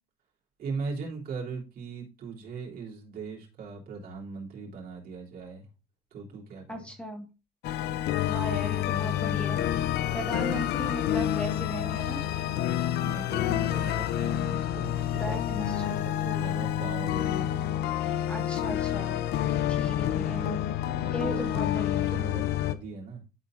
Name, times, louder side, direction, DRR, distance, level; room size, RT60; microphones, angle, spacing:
voice 1, 0.6-5.7 6.1-6.9 8.9-9.4 12.9-17.6 20.0-23.2, right 4 dB, 60° right, -2 dB, 3.3 m, -40 dB
voice 2, 6.7-7.2 8.2-9.7 10.1-12.2 15.2-16.0 18.3-19.2 19.7-20.5 21.1-22.1, equal, 5° left, 4 dB, 1.6 m, -37 dB
sound 1, 7.6-22.7, left 11 dB, 75° left, 0.6 m, -28 dB
12.0 x 4.3 x 2.5 m, 0.29 s
cardioid pair, 110°, 17 cm